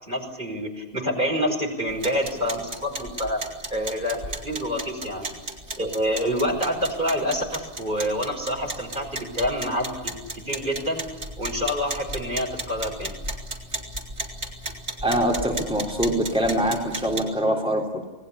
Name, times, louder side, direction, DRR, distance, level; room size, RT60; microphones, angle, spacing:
voice 1, 0.0-3.4 3.7-5.3 5.8-10.2 10.4-11.0 11.4-13.1, equal, 45° right, 3 dB, 5.6 m, -27 dB
sound 1, 1.9-17.2, right 1 dB, 85° right, 4.3 m, -35 dB
voice 2, 15.0-18.0, right 1 dB, 5° right, 0 dB, 3.6 m, -24 dB
28.0 x 19.5 x 8.6 m, 1.3 s
omnidirectional pair, 1.2 m